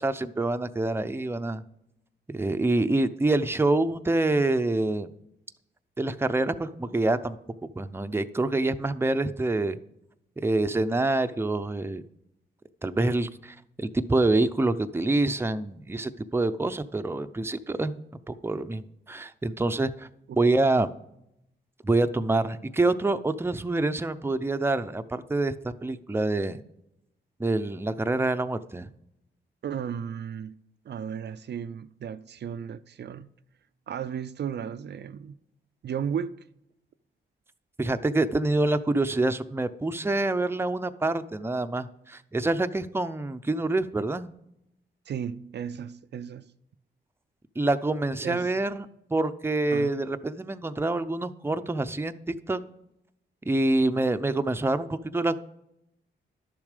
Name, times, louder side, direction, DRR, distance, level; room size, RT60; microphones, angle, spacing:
voice 1, 0.0-1.6 2.3-5.1 6.0-7.4 7.8-9.8 10.4-12.0 12.8-18.0 18.3-20.1 20.4-20.9 21.8-26.6 27.4-28.9 37.8-44.3 47.6-52.2 52.5-52.6 53.5-55.4, right 2 dB, 10° right, 0.6 m, -26 dB
voice 2, 29.6-30.6 30.9-33.3 33.9-35.3 35.8-36.4 45.1-46.5 48.2-48.5 49.7-50.0, right 8 dB, 60° right, 0.5 m, -34 dB
11.5 x 7.2 x 5.0 m
cardioid pair, 80°, 20 cm